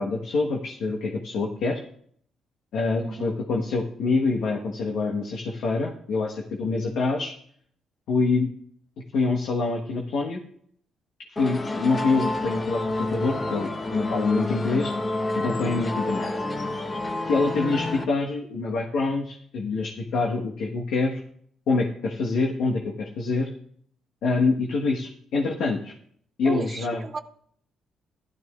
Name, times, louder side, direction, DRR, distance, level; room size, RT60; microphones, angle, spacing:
voice 1, 0.0-1.8 2.7-7.3 8.1-8.5 9.1-10.4 11.3-14.9 15.3-16.4 17.3-21.2 21.7-23.5 24.2-25.9 26.4-27.1, left 3 dB, 75° left, 0 dB, 1.3 m, -26 dB
voice 2, 3.0-3.3 26.4-27.2, right 5 dB, 35° right, 6 dB, 0.7 m, -34 dB
sound 1, 11.4-18.0, left 2 dB, 30° left, 1.1 m, -29 dB
15.5 x 12.0 x 2.4 m, 0.64 s
cardioid pair, 90°, 0 cm